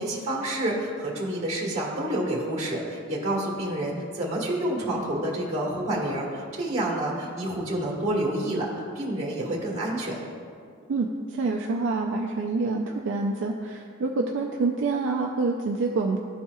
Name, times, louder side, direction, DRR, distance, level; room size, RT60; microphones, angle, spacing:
voice 1, 0.0-10.1, right 1 dB, 30° right, -2 dB, 1.6 m, -28 dB
voice 2, 10.9-16.2, right 3 dB, 60° right, 1 dB, 0.4 m, -27 dB
12.5 x 4.2 x 2.3 m, 2.2 s
head